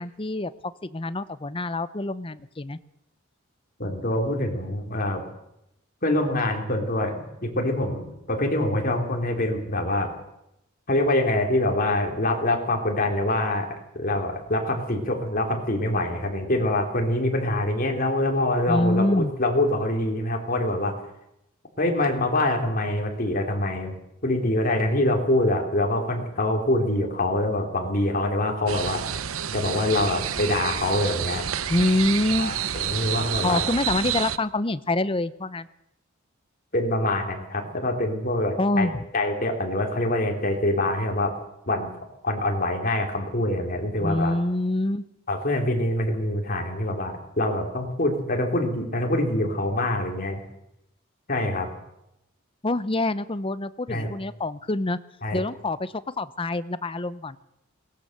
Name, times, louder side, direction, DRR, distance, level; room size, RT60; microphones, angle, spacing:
voice 1, 0.0-2.8 18.7-19.3 31.7-32.5 33.4-35.7 38.6-39.0 44.0-45.0 52.6-55.0 55.3-57.4, left 2 dB, 25° left, 14 dB, 0.8 m, -26 dB
voice 2, 3.8-5.2 6.0-7.1 7.4-10.1 10.9-13.7 13.9-20.9 21.8-23.9 24.2-29.2 29.5-31.4 32.4-33.6 36.7-41.3 41.7-41.9 42.2-44.3 45.3-50.4 51.3-51.7 53.9-54.1 55.2-55.4, left 1 dB, 40° left, 2 dB, 3.8 m, -25 dB
sound 1, 28.7-34.4, right 9 dB, 75° right, 0.8 m, -29 dB
22.0 x 19.0 x 6.8 m, 0.84 s
head